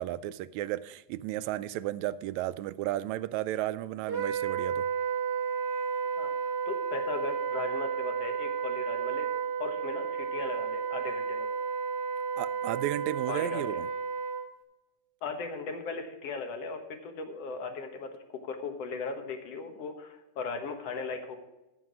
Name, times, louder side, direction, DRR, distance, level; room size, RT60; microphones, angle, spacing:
voice 1, 0.0-4.9 12.4-13.9, right 14 dB, 80° right, 1.7 m, -33 dB
Wind instrument woodwind instrument, 4.1-14.5, right 6 dB, 45° right, 1.4 m, -32 dB
voice 2, 6.7-11.5 13.3-13.7 15.2-21.4, left 4 dB, 60° left, 2.2 m, -37 dB
15.0 x 6.2 x 4.8 m
omnidirectional pair, 3.6 m